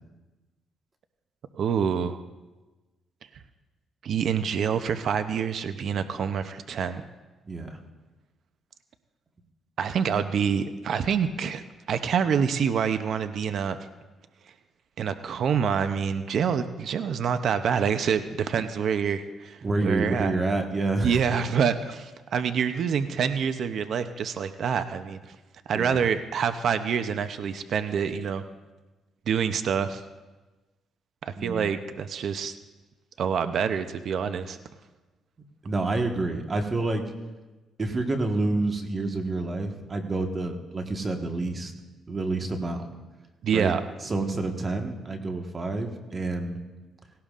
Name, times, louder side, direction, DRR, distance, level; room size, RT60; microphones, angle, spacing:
voice 1, 1.5-2.2 4.0-7.1 9.8-11.6 11.9-13.8 15.0-20.3 21.0-25.4 25.7-28.4 29.3-30.0 31.2-32.5 33.2-34.6 43.4-43.8, right 7 dB, 65° right, 10 dB, 0.6 m, -26 dB
voice 2, 7.5-7.8 19.6-21.2 25.7-26.1 31.4-31.7 35.6-37.0 37.8-41.7 42.1-42.9 43.5-43.7 44.0-46.6, right 2 dB, 35° right, 4 dB, 1.4 m, -28 dB
17.5 x 17.0 x 2.5 m, 1.2 s
cardioid pair, 90°, 0 cm